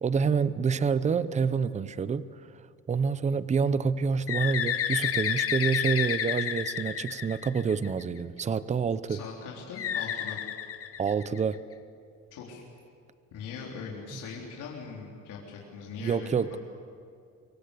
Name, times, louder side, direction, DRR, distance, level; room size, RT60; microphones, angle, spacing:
voice 1, 0.0-2.3 2.9-9.2 11.0-11.6 16.0-16.5, right 6 dB, 25° right, 15 dB, 0.7 m, -27 dB
Bird, 4.3-8.0 9.8-11.5, left 9 dB, 50° left, 1.3 m, -30 dB
voice 2, 9.1-10.4 12.3-12.6 13.3-16.3, left 5 dB, 90° left, -3 dB, 4.0 m, -41 dB
25.0 x 23.0 x 8.4 m, 2.4 s
cardioid pair, 150°, 30 cm